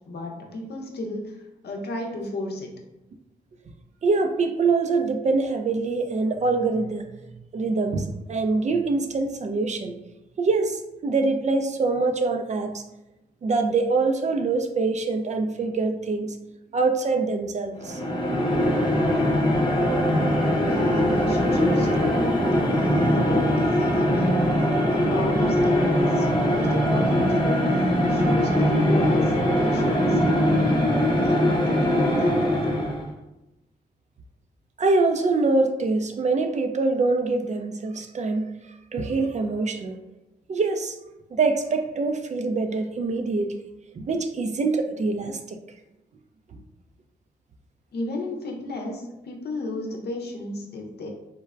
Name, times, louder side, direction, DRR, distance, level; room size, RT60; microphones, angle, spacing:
voice 1, 0.1-2.7 20.5-32.9 47.9-51.1, left 2 dB, 60° left, 0 dB, 0.7 m, -33 dB
voice 2, 4.0-7.0 7.5-10.0 10.4-12.8 13.4-16.3 16.7-18.0 34.8-38.5 38.9-39.9 40.5-40.9 41.3-43.5 44.0-45.6, right 3 dB, 40° right, 5 dB, 0.4 m, -24 dB
sound 1, 17.8-33.1, equal, 25° left, 0.9 m, -21 dB
3.3 x 2.1 x 2.3 m, 0.95 s
hypercardioid pair, 40°, 19 cm